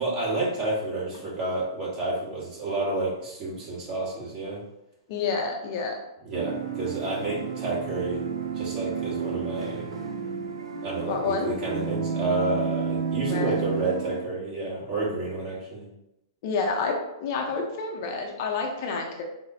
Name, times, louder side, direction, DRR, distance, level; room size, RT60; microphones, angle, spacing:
voice 1, 0.0-4.6 6.2-8.3 8.5-9.9 10.8-15.9, right 2 dB, 30° right, -5 dB, 1.3 m, -30 dB
voice 2, 5.1-5.9 11.1-11.5 13.3-13.6 16.4-19.2, left 4 dB, 45° left, 1 dB, 0.5 m, -29 dB
sound 1, 6.3-14.2, right 6 dB, 80° right, 0.5 m, -31 dB
3.9 x 2.0 x 2.7 m, 0.88 s
hypercardioid pair, 120°, 3 cm